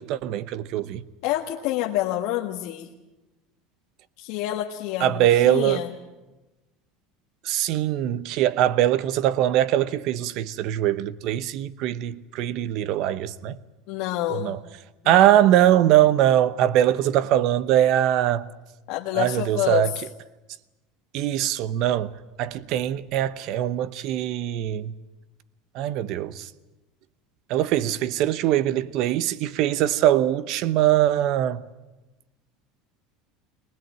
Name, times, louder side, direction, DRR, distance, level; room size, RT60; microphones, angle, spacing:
voice 1, 0.0-1.0 5.0-5.8 7.4-13.6 14.3-14.6 15.0-18.5 19.1-19.9 21.1-24.9 25.7-26.5 27.5-31.6, right 12 dB, 55° right, 0.9 m, -22 dB
voice 2, 1.2-2.9 4.2-5.9 13.9-14.6 15.0-15.4 18.9-19.9, left 14 dB, 65° left, 1.5 m, -28 dB
20.5 x 20.0 x 9.1 m
supercardioid pair, 140°, 0 cm